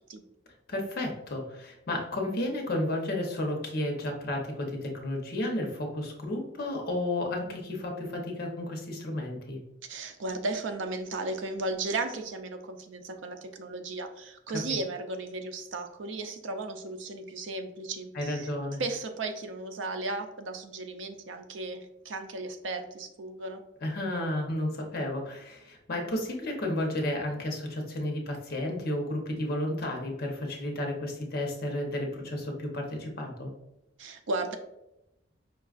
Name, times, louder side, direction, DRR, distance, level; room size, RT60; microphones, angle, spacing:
voice 1, 0.7-9.6 14.5-14.6 18.1-18.8 23.8-33.5, left 1 dB, 55° left, 2 dB, 0.8 m, -32 dB
voice 2, 9.9-18.5 18.8-23.6 34.0-34.5, right 2 dB, 85° right, 7 dB, 0.4 m, -35 dB
5.2 x 2.3 x 2.4 m, 0.89 s
head